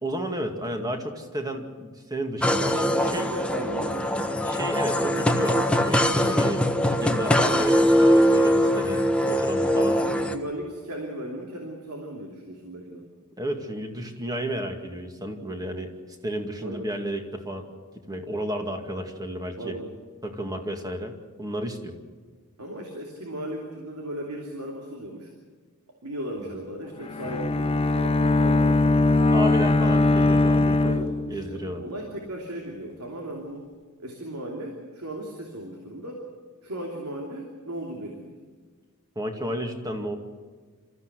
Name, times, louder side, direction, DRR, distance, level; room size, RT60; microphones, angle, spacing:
voice 1, 0.0-3.3 4.4-6.6 6.9-10.0 13.4-15.9 16.2-17.7 18.1-19.8 20.2-21.9 29.3-30.9 31.3-31.9 39.2-40.2, equal, 15° right, 4 dB, 2.2 m, -32 dB
sound 1, 2.4-10.4, equal, 5° left, 1.1 m, -22 dB
voice 2, 3.1-4.4 9.8-13.1 16.6-16.8 19.6-20.0 22.6-25.3 26.0-28.9 30.8-33.6 34.0-36.2 36.6-38.4, right 1 dB, 75° right, 0 dB, 3.0 m, -36 dB
Bowed string instrument, 27.0-31.7, left 2 dB, 25° left, 0.5 m, -21 dB
27.0 x 14.5 x 8.2 m, 1.5 s
head